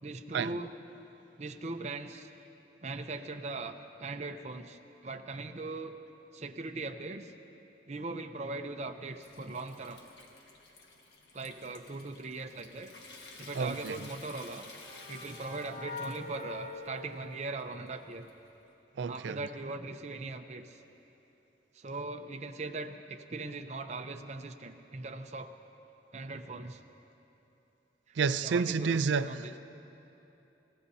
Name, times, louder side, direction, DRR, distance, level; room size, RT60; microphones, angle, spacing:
voice 1, 0.0-0.7 1.4-2.3 2.8-6.0 6.3-7.3 7.9-10.0 11.3-12.9 13.4-14.7 15.1-18.3 19.0-20.8 21.7-25.5 26.1-26.8 28.4-29.5, right 3 dB, 40° right, 6 dB, 0.6 m, -40 dB
Water tap faucet / Sink (filling or washing) / Trickle dribble, 8.7-18.7, left 3 dB, 70° left, 1.6 m, -54 dB
voice 2, 13.5-14.0 19.0-19.4 28.2-29.6, right 5 dB, 85° right, 14 dB, 0.4 m, -30 dB
sound 1, 14.2-18.1, left 2 dB, 55° left, 2.4 m, -45 dB
29.5 x 16.0 x 2.8 m, 3.0 s
head